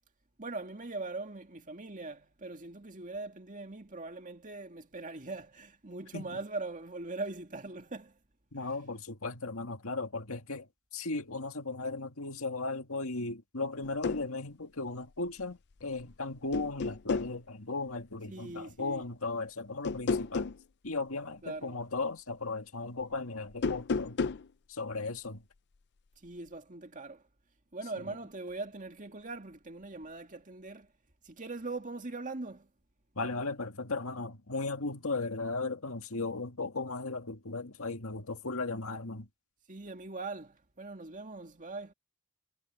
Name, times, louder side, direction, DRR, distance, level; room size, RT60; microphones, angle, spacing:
voice 1, 0.4-8.2 18.3-19.0 21.4-21.8 26.2-27.2 27.7-30.9 31.2-32.7 39.7-41.9, right 3 dB, 35° right, 2.2 m, -41 dB
voice 2, 8.5-10.7 10.9-20.5 20.8-24.2 24.7-25.4 33.2-39.3, left 3 dB, 65° left, 2.1 m, -36 dB
sound 1, 13.8-14.3 15.8-16.2 16.5-17.4 19.8-20.6 23.5-24.5, left 4 dB, 50° left, 0.5 m, -32 dB
head